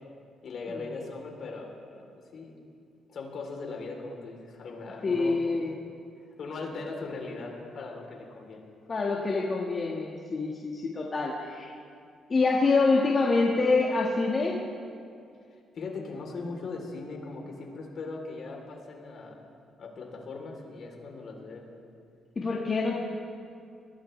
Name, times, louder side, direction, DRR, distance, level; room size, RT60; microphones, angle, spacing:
voice 1, 0.4-2.1 2.3-2.5 3.1-5.4 6.4-8.7 15.5-19.4 19.8-21.7, left 3 dB, 60° left, 0 dB, 3.5 m, -39 dB
voice 2, 5.0-5.7 8.9-11.7 12.3-14.6 22.4-23.0, left 3 dB, 35° left, -3 dB, 1.7 m, -26 dB
21.0 x 17.5 x 3.3 m, 2.4 s
cardioid pair, 90°, 0 cm